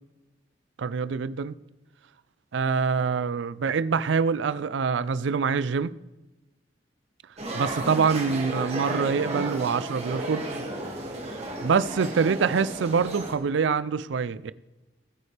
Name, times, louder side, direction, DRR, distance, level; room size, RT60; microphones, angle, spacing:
voice 1, 0.8-1.6 2.5-5.9 7.5-10.5 11.6-14.5, right 5 dB, 75° right, 0.4 m, -25 dB
sound 1, 7.4-13.3, right 1 dB, 35° right, 2.0 m, -33 dB
19.5 x 8.6 x 3.4 m
head